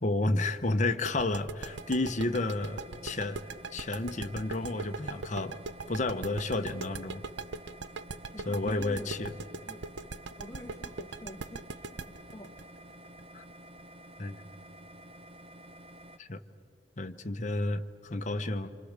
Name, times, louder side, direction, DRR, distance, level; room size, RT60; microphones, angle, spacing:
voice 1, 0.0-3.4 3.7-5.6 5.9-7.2 8.4-9.4 13.3-13.4 14.2-14.4 16.2-16.4 17.0-18.7, left 2 dB, 40° left, 8 dB, 1.1 m, -31 dB
sound 1, 1.1-13.8, right 4 dB, 75° right, 0.7 m, -40 dB
sound 2, 1.6-16.2, right 1 dB, 30° right, 0.8 m, -51 dB
voice 2, 8.3-9.1 9.6-9.8 10.4-12.5, left 1 dB, 15° left, 2 dB, 1.7 m, -46 dB
27.5 x 26.5 x 6.7 m, 2.2 s
head